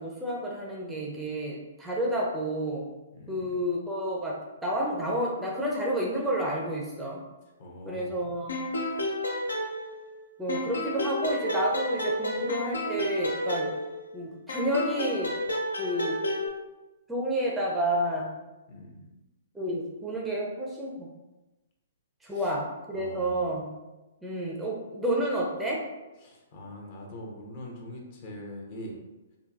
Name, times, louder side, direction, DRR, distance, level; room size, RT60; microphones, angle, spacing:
voice 1, 0.0-2.9 3.3-7.2 7.9-8.6 10.4-13.7 14.1-15.3 15.8-16.2 17.1-18.3 19.5-21.1 22.2-23.7 24.2-25.8, right 1 dB, 5° right, -4 dB, 0.5 m, -30 dB
voice 2, 3.1-3.6 7.6-8.3 18.7-19.1 22.3-22.5 22.9-23.5 26.2-29.0, left 1 dB, 45° left, -1 dB, 0.8 m, -43 dB
sound 1, 8.5-10.2 10.5-14.1 14.5-16.5, left 1 dB, 75° left, 0.5 m, -31 dB
3.7 x 2.2 x 2.5 m, 1.1 s
figure-of-eight pair, 120°, 0 cm